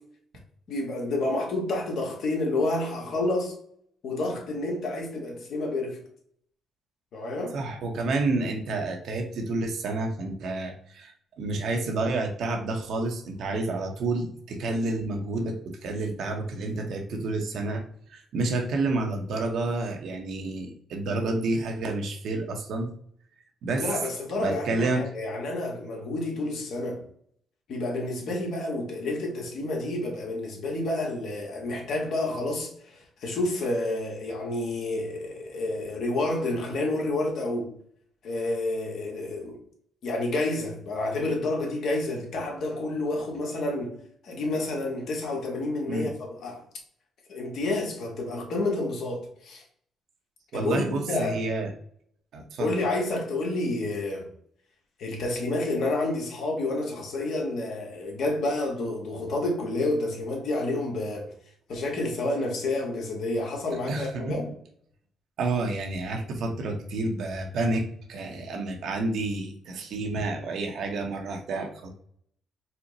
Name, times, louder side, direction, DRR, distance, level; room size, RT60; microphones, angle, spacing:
voice 1, 0.7-3.5 4.0-6.0 7.1-7.6 23.7-27.0 27.7-37.7 38.2-39.6 40.0-43.9 44.2-46.6 47.3-49.6 50.5-51.4 52.6-54.3 55.0-61.3 61.7-64.5, left 2 dB, 70° left, 1.3 m, -29 dB
voice 2, 7.5-17.8 18.1-22.9 23.6-24.0 24.4-25.1 45.9-46.1 50.5-51.7 52.3-52.7 63.9-64.5 65.4-71.9, right 2 dB, 70° right, 0.9 m, -29 dB
4.3 x 2.2 x 3.9 m
cardioid pair, 90°, 0 cm